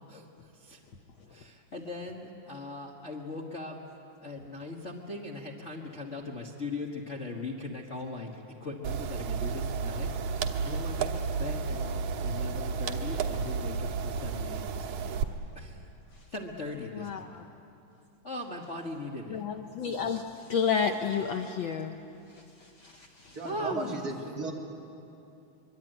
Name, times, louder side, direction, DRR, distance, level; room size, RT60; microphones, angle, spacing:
voice 1, 0.1-0.8 1.3-3.8 4.2-15.2 15.5-15.9 16.3-17.4 18.2-19.4 22.8-24.1, left 2 dB, 35° left, -1 dB, 1.3 m, -40 dB
sound 1, 8.8-15.2, right 5 dB, 80° right, 2.5 m, -32 dB
voice 2, 17.0-17.4 19.3-20.2 20.5-22.0 22.8-22.9 23.2-23.4, left 6 dB, 90° left, 5 dB, 1.1 m, -30 dB
voice 3, 23.3-24.5, right 3 dB, 35° right, -1 dB, 2.7 m, -35 dB
24.5 x 23.0 x 9.1 m, 2.8 s
omnidirectional pair, 3.3 m